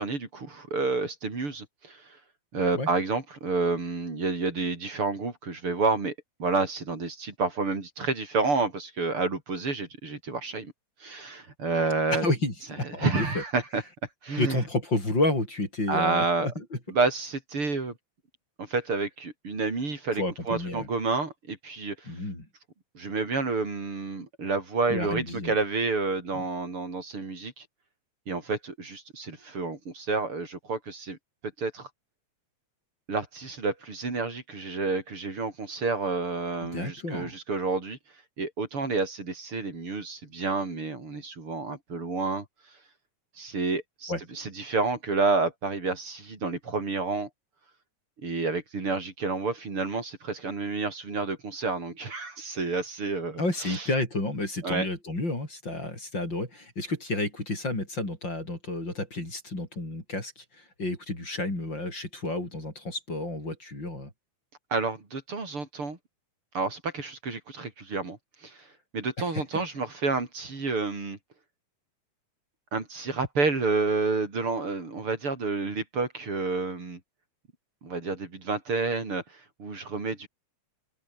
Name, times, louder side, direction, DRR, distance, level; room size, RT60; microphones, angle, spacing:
voice 1, 0.0-2.2 2.5-6.1 6.4-10.7 11.0-12.3 13.0-13.8 14.2-14.6 15.9-16.5 16.9-17.9 18.6-22.1 23.0-27.7 28.3-31.2 31.6-31.9 33.1-38.0 38.4-42.5 43.4-47.3 48.2-53.9 54.6-54.9 64.7-66.0 66.5-68.6 68.9-71.2 72.7-77.0 77.8-80.3, right 3 dB, 45° right, 5.5 m, -29 dB
voice 2, 12.1-13.4 14.4-16.6 20.1-20.9 22.1-22.5 24.9-25.6 36.6-37.3 44.1-44.2 53.4-64.1 69.3-69.6, left 2 dB, 35° left, 8.8 m, -31 dB
open air
omnidirectional pair, 3.4 m